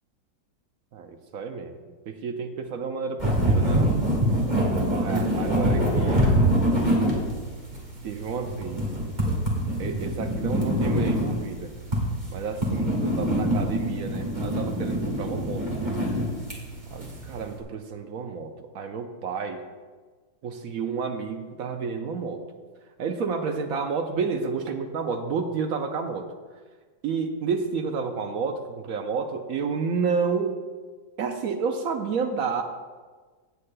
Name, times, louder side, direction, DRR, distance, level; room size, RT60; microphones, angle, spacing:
voice 1, 0.9-1.8 2.1-3.9 4.9-6.4 8.0-8.8 9.8-11.7 12.3-15.7 16.9-19.6 20.4-22.4 23.0-26.3 27.0-30.6 31.2-32.6, right 5 dB, 65° right, 6 dB, 0.9 m, -30 dB
sound 1, 3.2-17.5, equal, 25° right, 1.9 m, -25 dB
16.0 x 8.1 x 2.2 m, 1.4 s
omnidirectional pair, 2.0 m